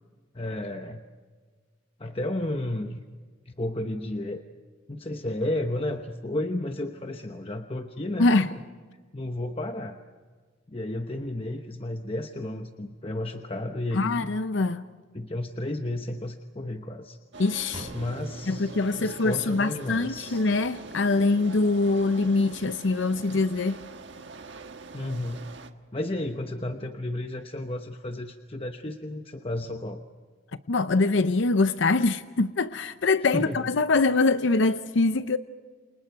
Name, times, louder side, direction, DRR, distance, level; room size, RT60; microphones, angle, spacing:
voice 1, 0.3-1.0 2.0-3.0 3.5-4.4 4.9-8.6 9.1-10.0 10.7-14.3 15.1-17.2 17.9-20.4 23.3-23.4 24.9-25.4 25.9-30.0 33.2-33.7, left 1 dB, 30° left, 1.0 m, -32 dB
voice 2, 13.9-14.8 17.4-17.9 18.5-23.8 30.7-35.4, left 3 dB, 65° left, 0.7 m, -24 dB
sound 1, 17.3-25.7, right 3 dB, 60° right, 1.5 m, -43 dB
Drum, 17.7-19.7, right 1 dB, 25° right, 6.4 m, -43 dB
29.5 x 27.5 x 4.7 m
head